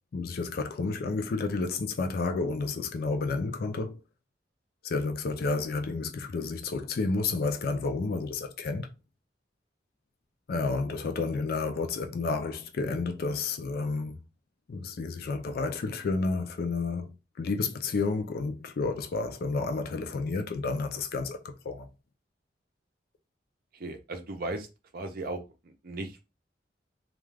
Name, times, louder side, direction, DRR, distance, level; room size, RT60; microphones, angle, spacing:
voice 1, 0.1-4.0 4.8-8.9 10.5-14.2 14.7-21.9, left 3 dB, 55° left, 0.4 m, -31 dB
voice 2, 23.7-24.7 24.9-26.3, right 2 dB, 55° right, 0.6 m, -37 dB
2.3 x 2.3 x 3.2 m
head